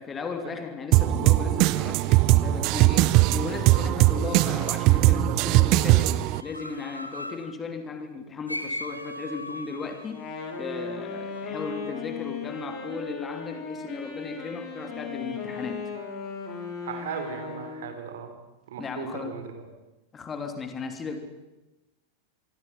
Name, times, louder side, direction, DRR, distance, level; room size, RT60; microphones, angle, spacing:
voice 1, 0.0-10.3 10.6-15.9 18.8-19.3 20.1-21.2, left 4 dB, 20° left, 6 dB, 3.1 m, -36 dB
sound 1, 0.9-6.4, right 17 dB, 40° right, 0.8 m, -20 dB
sound 2, 6.3-7.5 8.5-11.5, left 1 dB, 90° left, 2.0 m, -38 dB
Wind instrument woodwind instrument, 10.0-18.0, left 5 dB, 35° left, 5.3 m, -37 dB
voice 2, 16.8-18.3 18.7-19.7, right 7 dB, 60° right, 7 dB, 3.9 m, -37 dB
26.0 x 24.5 x 5.8 m, 1.0 s
figure-of-eight pair, 90°, 0 cm